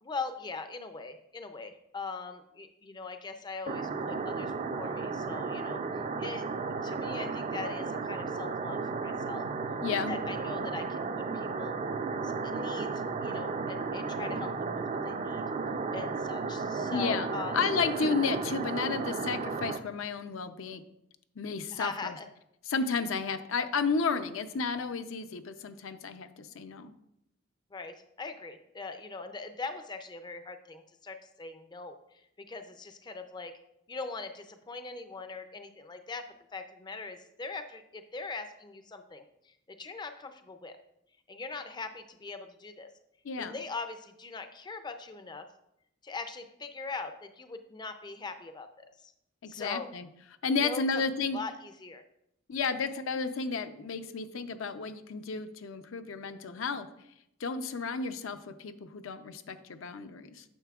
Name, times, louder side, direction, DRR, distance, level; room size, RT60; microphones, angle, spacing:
voice 1, 0.0-5.8 6.2-6.4 6.8-9.5 10.1-11.0 11.3-11.8 12.2-15.4 15.9-17.6 21.7-22.3 27.7-33.5 33.9-36.3 36.5-40.7 41.3-42.9 43.4-45.5 46.0-49.1 49.5-49.9 50.5-50.8 51.3-52.0, left 4 dB, 20° left, 8 dB, 0.4 m, -41 dB
sound 1, 3.7-19.8, right 4 dB, 35° right, 0.4 m, -34 dB
voice 2, 9.8-10.1 16.9-20.8 21.4-22.1 22.7-26.9 43.2-43.6 49.4-50.1 50.4-51.4 52.5-56.9 57.4-60.4, left 5 dB, 70° left, 9 dB, 0.5 m, -32 dB
9.2 x 6.6 x 2.3 m, 0.80 s
head